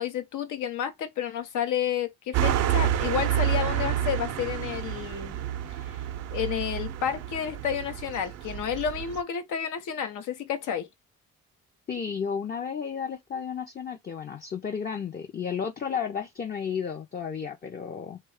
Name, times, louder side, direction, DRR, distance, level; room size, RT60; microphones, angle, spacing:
voice 1, 0.0-5.4 6.3-10.9, left 8 dB, 80° left, 0.7 m, -30 dB
sound 1, 2.3-9.2, right 11 dB, 60° right, 0.4 m, -29 dB
voice 2, 11.9-18.2, left 7 dB, 30° left, 0.5 m, -33 dB
3.1 x 2.2 x 3.4 m
cardioid pair, 90°, 30 cm